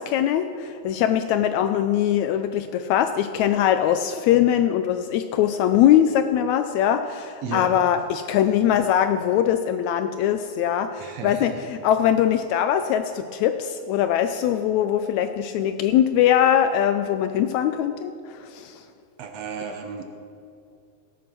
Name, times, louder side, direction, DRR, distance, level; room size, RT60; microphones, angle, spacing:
voice 1, 0.0-18.8, left 10 dB, 80° left, 9 dB, 1.7 m, -22 dB
voice 2, 7.4-7.8 11.0-11.6 19.2-20.0, right 6 dB, 65° right, 4 dB, 1.8 m, -33 dB
17.5 x 8.3 x 6.0 m, 2.5 s
omnidirectional pair, 3.6 m